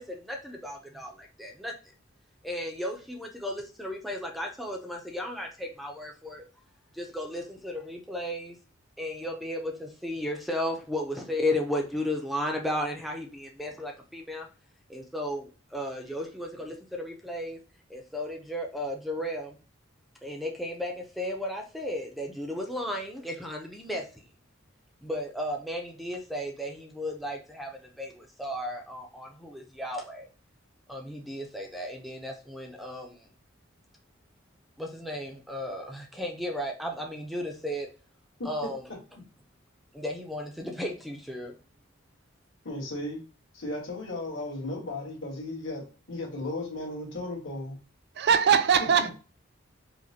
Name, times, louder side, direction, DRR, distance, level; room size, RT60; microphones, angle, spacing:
voice 1, 0.0-1.7 2.4-6.4 6.9-8.6 9.0-14.5 14.9-17.6 17.9-19.6 20.2-24.1 25.0-30.3 30.9-33.3 34.8-37.9 38.4-38.8 39.9-41.6, left 1 dB, ahead, 0.5 m, -34 dB
voice 2, 38.4-39.0 42.6-43.2 43.5-47.8 49.0-49.1, left 2 dB, 65° left, 1.6 m, -35 dB
voice 3, 48.2-49.1, right 7 dB, 55° right, 0.4 m, -21 dB
4.9 x 2.1 x 2.8 m
head